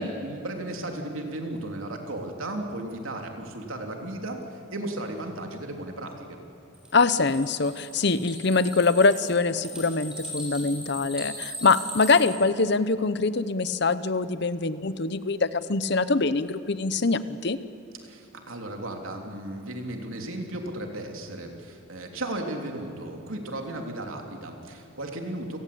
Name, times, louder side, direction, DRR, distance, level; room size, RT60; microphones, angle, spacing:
voice 1, 0.0-6.4 18.0-25.6, right 1 dB, 75° right, 3 dB, 3.4 m, -35 dB
sound 1, 6.7-12.3, equal, 5° right, 6.1 m, -38 dB
voice 2, 6.9-17.6, left 3 dB, 55° left, 14 dB, 0.9 m, -24 dB
29.5 x 18.5 x 8.6 m, 2.9 s
head